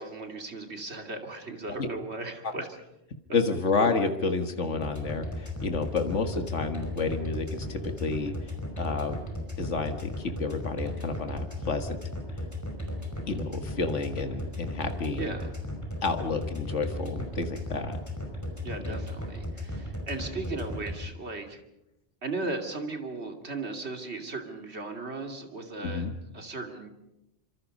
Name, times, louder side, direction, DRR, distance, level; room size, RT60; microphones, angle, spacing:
voice 1, 0.0-2.7 15.1-15.5 18.6-21.6 22.2-26.9, right 3 dB, 65° right, 4 dB, 3.0 m, -37 dB
voice 2, 3.3-8.3 8.8-9.2 9.6-12.0 13.3-15.4 16.0-18.0 18.8-19.0 25.8-26.1, left 4 dB, 85° left, 6 dB, 2.0 m, -30 dB
sound 1, 4.8-20.9, equal, 15° left, 5.2 m, -35 dB
27.5 x 25.5 x 5.4 m, 0.88 s
omnidirectional pair, 1.2 m